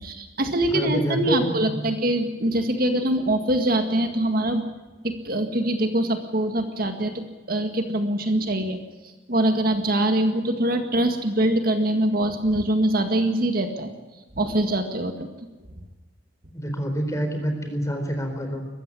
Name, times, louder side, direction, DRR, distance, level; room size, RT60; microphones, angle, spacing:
voice 1, 0.0-4.6 5.0-8.8 9.3-13.9 14.4-15.3, right 1 dB, 50° right, 6 dB, 1.9 m, -23 dB
voice 2, 0.7-1.9 16.5-18.7, equal, 15° left, 5 dB, 4.1 m, -27 dB
22.0 x 15.0 x 9.8 m, 1.2 s
head